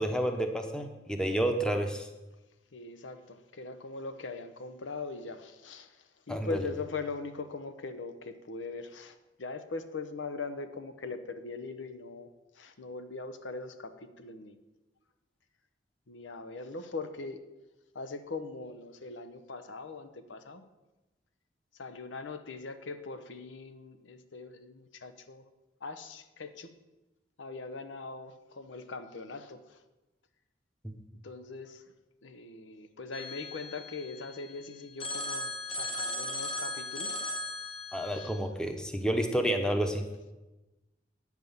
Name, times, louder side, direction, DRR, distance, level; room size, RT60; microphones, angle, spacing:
voice 1, 0.0-2.1 6.3-6.6 30.8-31.0 37.9-40.0, right 1 dB, 5° left, 5 dB, 0.9 m, -30 dB
voice 2, 2.7-12.3 12.5-14.6 16.1-17.4 17.9-20.6 21.7-25.4 25.8-26.7 27.4-29.8 31.2-31.8 32.2-37.2 38.1-38.3, left 3 dB, 85° left, 10 dB, 0.8 m, -41 dB
Telephone, 33.1-34.5 35.0-38.4, left 1 dB, 30° left, 1.5 m, -37 dB
9.0 x 6.0 x 7.0 m, 1.1 s
head